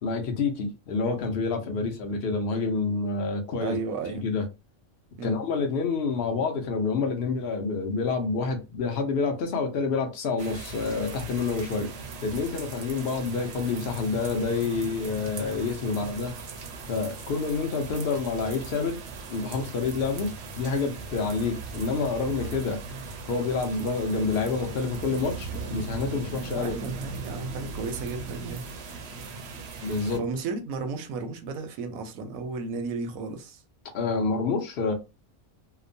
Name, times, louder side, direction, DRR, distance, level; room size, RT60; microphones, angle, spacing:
voice 1, 0.0-3.8 4.1-4.4 5.2-11.9 12.2-16.3 16.9-19.0 19.3-22.8 23.3-26.7 29.8-30.2 33.9-34.9, left 4 dB, 55° left, 0.8 m, -28 dB
voice 2, 3.6-4.2 5.2-5.4 26.5-28.6 30.1-33.6, right 4 dB, 85° right, 1.0 m, -34 dB
sound 1, 10.4-30.2, right 4 dB, 60° right, 0.7 m, -39 dB
2.9 x 2.0 x 2.6 m
omnidirectional pair, 1.4 m